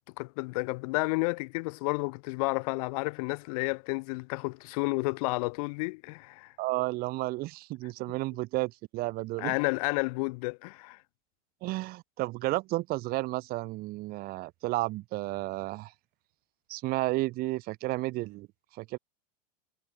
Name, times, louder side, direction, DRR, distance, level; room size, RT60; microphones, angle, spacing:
voice 1, 0.2-6.5 9.4-11.0, left 27 dB, 60° left, 7.2 m, -31 dB
voice 2, 6.6-9.5 11.6-15.9 16.7-18.5 18.8-19.0, right 20 dB, 45° right, 7.7 m, -32 dB
supercardioid pair, 125°, 21 cm